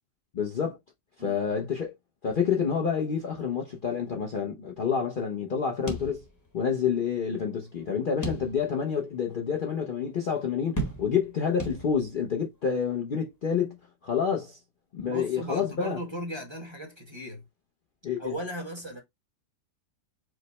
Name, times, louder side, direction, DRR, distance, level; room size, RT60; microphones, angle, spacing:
voice 1, 0.3-0.8 1.2-1.9 2.2-6.2 6.5-13.8 14.0-14.6 14.9-16.0 18.0-18.3, left 7 dB, 75° left, 0.4 m, -28 dB
sound 1, 5.9-6.7 7.0-7.1 8.2-8.9 9.4-9.5 10.8-11.3 11.6-12.2, right 1 dB, 15° left, 0.8 m, -35 dB
voice 2, 15.0-17.4 18.2-19.0, equal, 20° right, 1.0 m, -37 dB
4.8 x 2.1 x 4.0 m
omnidirectional pair, 1.8 m